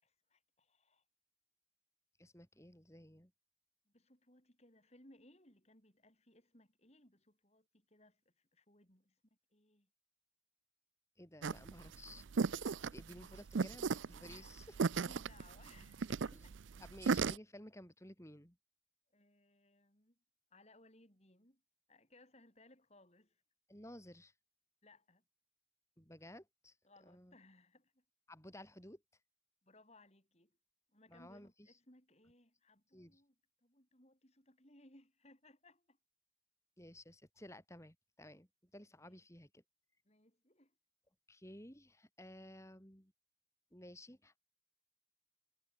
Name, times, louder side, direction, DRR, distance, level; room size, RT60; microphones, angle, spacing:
voice 1, 0.0-1.0 3.9-9.2 9.5-9.9 14.2-14.5 14.9-16.5 19.1-20.2 20.5-21.6 21.9-23.4 24.8-25.2 26.8-28.0 29.6-30.5 30.9-33.3 33.6-36.0 40.0-40.7, left 2 dB, 35° left, 6.5 m, -65 dB
voice 2, 2.2-3.3 11.2-14.8 16.3-16.5 16.8-18.6 23.7-24.3 26.0-26.8 27.0-27.4 28.3-29.0 31.1-31.7 32.9-33.2 36.8-39.6 41.3-43.1 43.7-44.4, left 1 dB, 15° left, 7.3 m, -55 dB
sound 1, 11.4-17.4, right 5 dB, 70° right, 0.5 m, -36 dB
head